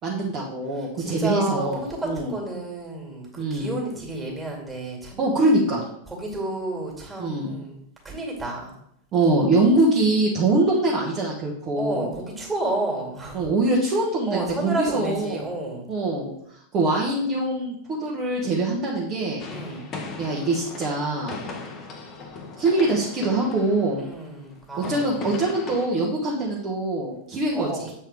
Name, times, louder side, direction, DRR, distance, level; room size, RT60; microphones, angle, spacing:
voice 1, 0.0-2.3 3.4-3.7 5.2-5.8 7.2-7.5 9.1-12.1 13.3-15.5 15.9-16.3 16.7-17.7 18.0-19.4 20.2-21.4 22.6-24.0 24.8-27.7, right 2 dB, 30° right, -4 dB, 1.3 m, -23 dB
voice 2, 0.7-5.2 6.1-7.8 8.0-8.8 11.8-13.5 14.3-15.9 19.5-19.9 24.0-25.2 27.5-27.9, right 2 dB, 10° right, -1 dB, 2.3 m, -31 dB
sound 1, 19.4-25.9, left 3 dB, 30° left, 1.0 m, -38 dB
7.7 x 4.5 x 3.4 m, 0.71 s
figure-of-eight pair, 90°, 0 cm